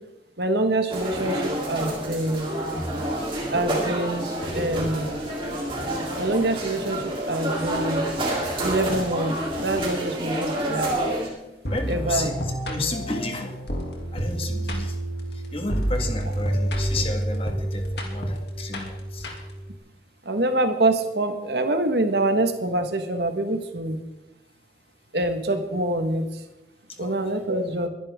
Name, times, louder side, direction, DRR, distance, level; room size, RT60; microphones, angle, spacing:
voice 1, 0.4-2.6 3.5-4.3 4.5-5.2 6.2-8.0 8.6-11.0 11.9-12.3 20.3-24.0 25.1-26.4 27.0-27.9, right 2 dB, 65° right, 7 dB, 1.6 m, -25 dB
sound 1, 0.9-11.3, right 1 dB, 30° right, 3.6 m, -28 dB
sound 2, 11.6-19.7, right 1 dB, 70° left, 2.8 m, -29 dB
voice 2, 11.7-13.6 14.1-14.9 15.5-19.3 26.9-27.2, left 2 dB, 35° left, 4 dB, 1.8 m, -32 dB
23.5 x 11.0 x 3.7 m, 0.99 s
head